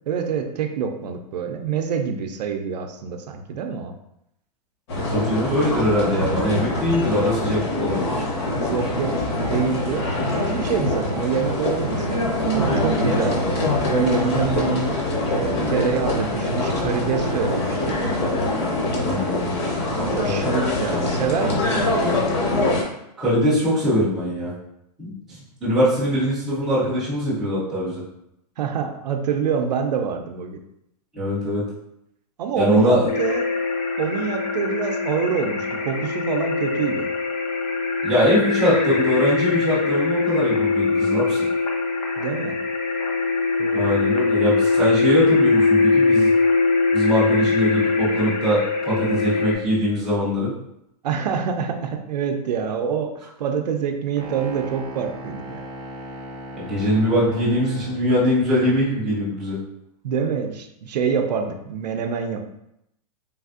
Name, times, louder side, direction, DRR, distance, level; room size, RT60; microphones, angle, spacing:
voice 1, 0.1-3.9 8.6-15.0 15.3-18.0 20.1-22.2 28.6-30.6 32.4-33.5 34.0-37.1 42.2-42.6 43.6-43.9 51.0-55.6 60.0-62.5, right 6 dB, 90° right, 5 dB, 0.5 m, -26 dB
sound 1, 4.9-22.8, left 2 dB, 40° left, 0.6 m, -24 dB
voice 2, 5.1-8.3 19.0-19.6 20.0-20.2 23.2-24.5 25.0-28.0 31.1-31.6 32.6-33.1 38.0-41.4 43.7-46.3 46.9-50.5 56.6-59.6, equal, ahead, -11 dB, 0.3 m, -22 dB
sound 2, 33.1-49.5, left 4 dB, 80° left, 0.7 m, -22 dB
sound 3, 54.2-58.1, equal, 45° right, 0.6 m, -37 dB
3.3 x 2.4 x 2.4 m, 0.80 s
supercardioid pair, 170°, 21 cm